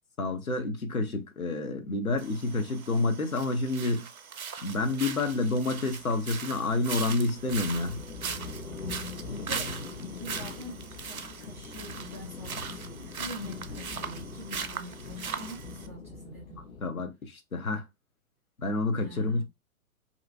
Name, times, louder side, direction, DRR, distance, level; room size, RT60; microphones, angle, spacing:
voice 1, 0.2-4.1 4.6-8.0 16.8-17.8 18.6-19.4, left 3 dB, 85° left, 0.8 m, -29 dB
sound 1, 2.2-15.9, right 6 dB, 85° right, 0.6 m, -40 dB
sound 2, 5.3-16.8, left 4 dB, 65° left, 1.1 m, -42 dB
voice 2, 9.3-16.6 18.9-19.4, equal, 10° right, 0.4 m, -45 dB
2.8 x 2.5 x 2.6 m
figure-of-eight pair, 115°, 42 cm